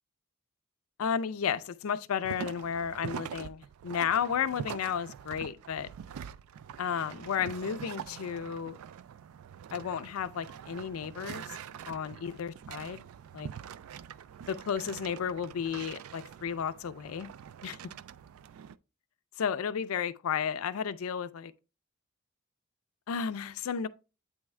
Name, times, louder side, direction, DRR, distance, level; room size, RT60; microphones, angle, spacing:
voice 1, 1.0-5.9 6.8-8.8 9.7-11.6 11.9-13.0 13.3-13.5 14.5-17.3 17.6-17.8 19.4-21.5 23.1-23.9, left 7 dB, 90° left, 0.4 m, -33 dB
sound 1, 2.2-18.8, right 8 dB, 85° right, 0.3 m, -44 dB
8.5 x 3.5 x 3.2 m
head